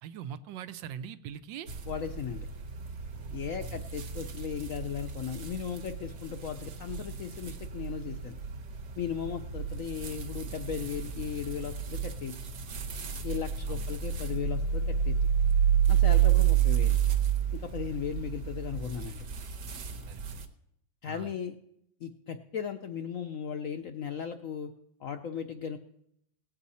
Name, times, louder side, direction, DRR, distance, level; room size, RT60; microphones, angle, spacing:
voice 1, 0.0-1.7 3.1-3.9 13.7-13.9 20.1-20.4 21.1-21.3, right 8 dB, 80° right, 13 dB, 1.3 m, -43 dB
sound 1, 1.7-20.4, right 9 dB, 60° right, 1.5 m, -30 dB
voice 2, 1.9-2.5 3.3-8.4 9.0-12.3 13.2-15.2 15.9-17.0 17.5-19.2 21.0-21.6 22.0-24.7 25.0-25.8, left 8 dB, 70° left, 7 dB, 0.8 m, -36 dB
18.5 x 8.1 x 4.2 m, 0.77 s
omnidirectional pair, 2.0 m